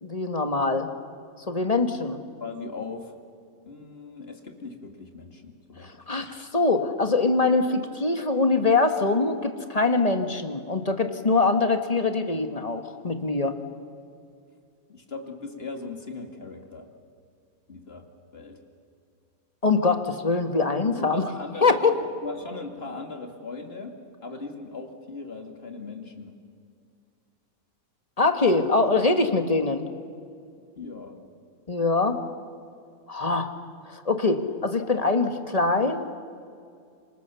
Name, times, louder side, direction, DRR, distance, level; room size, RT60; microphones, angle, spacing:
voice 1, 0.0-0.9 1.5-2.2 5.8-13.6 19.6-21.2 21.6-21.9 28.2-29.8 31.7-32.2 33.1-33.5 33.9-36.1, left 3 dB, 25° left, 7 dB, 1.5 m, -23 dB
voice 2, 2.4-3.1 3.7-6.2 14.9-16.9 17.7-18.1 18.3-18.6 21.0-26.3 30.8-31.2, left 3 dB, 40° left, 4 dB, 2.5 m, -39 dB
28.0 x 25.5 x 7.0 m, 2.4 s
omnidirectional pair, 1.6 m